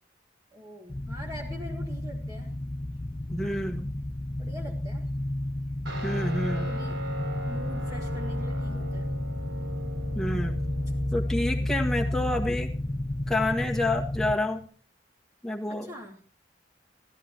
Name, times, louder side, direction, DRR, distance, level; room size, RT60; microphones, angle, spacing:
voice 1, 0.5-2.5 4.4-5.1 6.5-7.0 7.4-9.1 12.1-12.3 15.7-16.2, left 1 dB, 20° right, -2 dB, 1.6 m, -44 dB
sound 1, 0.9-14.4, left 1 dB, 20° left, 0.5 m, -31 dB
voice 2, 3.3-3.9 6.0-6.7 10.2-10.5 11.1-12.7 13.3-14.6 15.4-15.9, left 2 dB, ahead, -1 dB, 1.7 m, -28 dB
Guitar, 5.9-14.7, right 1 dB, 75° right, 5.0 m, -41 dB
16.5 x 12.0 x 2.9 m, 0.42 s
head